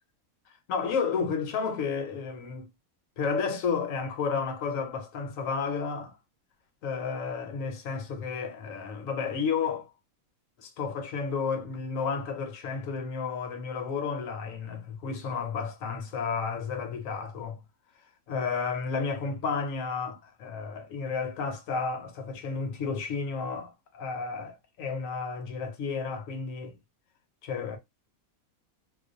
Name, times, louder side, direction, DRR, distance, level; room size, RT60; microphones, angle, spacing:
voice 1, 0.7-2.7 3.2-6.2 6.8-9.9 10.6-17.6 18.3-26.8 27.4-27.8, left 5 dB, 70° left, 1.0 m, -32 dB
2.4 x 2.2 x 2.5 m
omnidirectional pair, 1.5 m